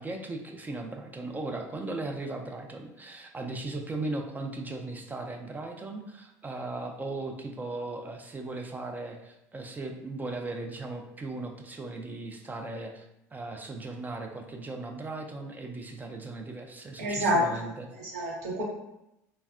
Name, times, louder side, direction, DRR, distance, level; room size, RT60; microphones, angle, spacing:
voice 1, 0.0-13.1 13.3-17.9, right 2 dB, 20° right, 3 dB, 0.4 m, -37 dB
voice 2, 17.0-17.5 17.9-18.6, equal, 75° right, -3 dB, 0.9 m, -27 dB
3.3 x 2.1 x 2.3 m, 0.86 s
hypercardioid pair, 70°, 9 cm